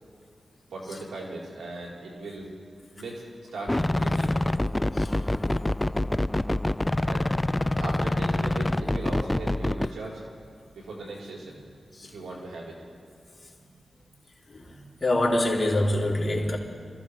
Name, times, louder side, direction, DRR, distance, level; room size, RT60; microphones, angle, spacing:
voice 1, 0.7-2.5 2.9-3.2 3.5-4.4 7.0-7.3 7.8-10.2 10.8-11.6 12.1-12.8, right 2 dB, 90° right, 4.0 m, -38 dB
sound 1, 3.7-9.9, left 1 dB, 20° left, 0.4 m, -26 dB
voice 2, 4.9-5.3 11.9-12.1 14.5-16.6, left 1 dB, 40° left, 3.4 m, -26 dB
26.0 x 15.5 x 3.4 m
cardioid pair, 50°, 0 cm